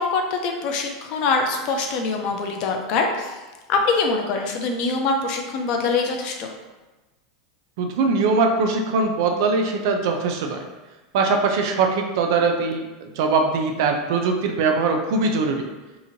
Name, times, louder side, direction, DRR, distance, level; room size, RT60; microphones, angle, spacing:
voice 1, 0.0-3.4 3.7-6.5, left 4 dB, 40° left, 3 dB, 0.4 m, -24 dB
voice 2, 7.8-10.6 11.1-15.7, right 4 dB, 60° right, 3 dB, 0.4 m, -21 dB
2.9 x 2.5 x 2.6 m, 1.1 s
supercardioid pair, 155°, 2 cm